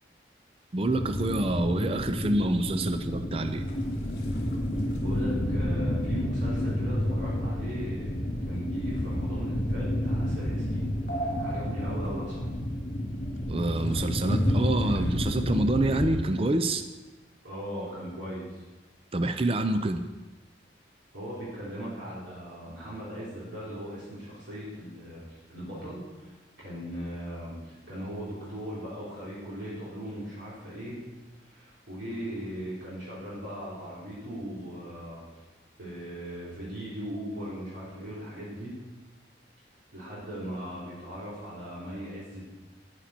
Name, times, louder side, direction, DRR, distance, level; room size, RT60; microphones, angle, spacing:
voice 1, 0.7-3.7 13.5-16.8 19.1-20.0, right 2 dB, 30° right, 8 dB, 0.5 m, -27 dB
sound 1, 0.9-16.1, equal, 50° left, 2.5 m, -30 dB
voice 2, 5.0-12.5 17.4-18.6 21.1-26.3 26.6-31.1 31.4-35.2 35.8-38.8 39.9-42.5, equal, 80° right, -9 dB, 3.5 m, -38 dB
11.0 x 9.8 x 4.3 m, 1.1 s
head